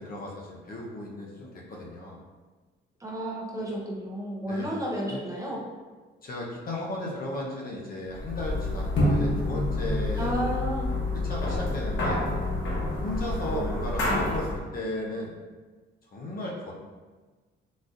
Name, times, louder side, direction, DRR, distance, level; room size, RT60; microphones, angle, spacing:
voice 1, 0.0-2.2 4.4-4.7 5.1-5.2 6.2-10.3 11.2-12.2 13.0-14.5 14.7-15.3 16.1-16.7, left 1 dB, 45° left, -3 dB, 0.8 m, -35 dB
voice 2, 3.0-5.6 10.2-10.9 13.5-13.6 14.0-14.4, equal, 15° right, -3 dB, 0.7 m, -32 dB
sound 1, 8.1-14.6, left 2 dB, 70° left, 1.0 m, -28 dB
4.0 x 2.5 x 2.4 m, 1.3 s
cardioid pair, 90°, 20 cm